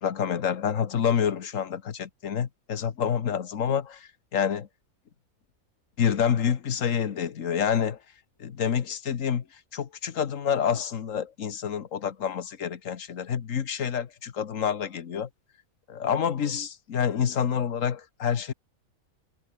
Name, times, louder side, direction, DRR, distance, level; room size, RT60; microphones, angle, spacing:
voice 1, 0.0-4.7 6.0-8.0 8.4-9.4 9.7-15.3 15.9-18.5, left 8 dB, 65° left, 1.5 m, -28 dB
omnidirectional pair, 1.5 m